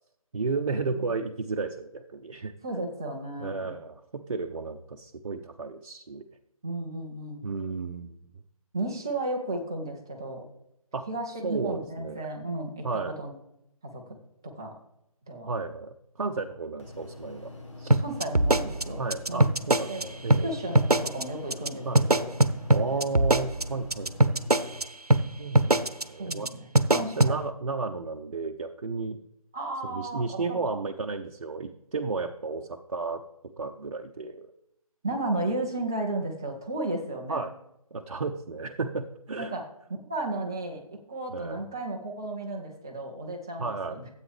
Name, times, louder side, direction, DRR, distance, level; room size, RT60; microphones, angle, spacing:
voice 1, 0.3-2.5 3.4-6.2 7.4-8.3 10.9-11.0 11.4-12.3 12.8-13.1 15.5-17.5 17.8-18.0 19.0-19.9 20.2-20.5 21.8-22.0 22.7-24.4 25.4-25.8 26.1-26.5 26.9-29.2 29.8-33.2 33.6-34.5 37.3-37.5 37.9-39.5 41.3-41.6 43.6-44.0, right 4 dB, 55° right, 4 dB, 0.7 m, -33 dB
voice 2, 2.6-3.8 6.6-7.4 8.7-10.5 11.1-12.9 13.2-13.3 13.8-14.0 14.4-14.7 15.3-15.5 18.0-19.0 19.3-19.6 19.9-20.1 20.4-22.3 22.7-23.0 26.2-27.4 29.5-30.6 35.0-37.4 39.4-39.6 40.1-44.1, right 2 dB, 5° right, 0 dB, 0.4 m, -34 dB
sound 1, 16.8-24.8, left 2 dB, 55° left, 1.7 m, -44 dB
sound 2, 17.9-20.0 20.3-20.4 20.8-21.2 21.5-21.7 22.0-24.8 25.1-25.2 25.6-26.0 26.3-26.5 26.8-27.3, right 2 dB, 90° right, 0.8 m, -21 dB
13.0 x 8.2 x 3.4 m, 0.82 s
figure-of-eight pair, 150°, 19 cm